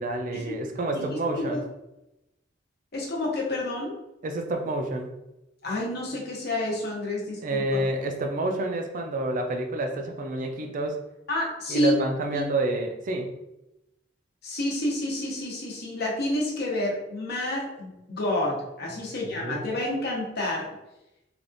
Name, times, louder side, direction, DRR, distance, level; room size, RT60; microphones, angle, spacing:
voice 1, 0.0-1.6 4.2-5.1 7.4-11.0 11.7-13.3 19.2-19.7, right 2 dB, 45° right, 4 dB, 0.4 m, -29 dB
voice 2, 0.9-1.6 2.9-4.0 5.6-7.8 11.3-11.9 12.3-12.4 14.4-20.7, left 1 dB, 55° left, -3 dB, 0.9 m, -29 dB
3.3 x 2.4 x 2.6 m, 0.92 s
head